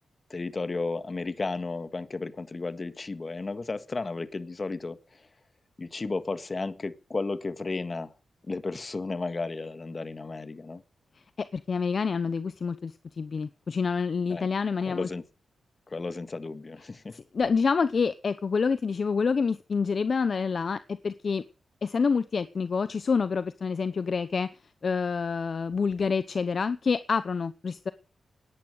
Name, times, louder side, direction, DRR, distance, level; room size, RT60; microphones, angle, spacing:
voice 1, 0.3-5.3 5.8-8.1 8.5-10.8 14.3-14.5 14.9-15.2 15.9-17.2, left 3 dB, 35° left, 1.7 m, -33 dB
voice 2, 11.4-15.1 17.1-21.4 21.8-24.5 24.8-27.9, left 5 dB, 55° left, 0.8 m, -27 dB
17.5 x 11.0 x 6.6 m
cardioid pair, 80°, 0 cm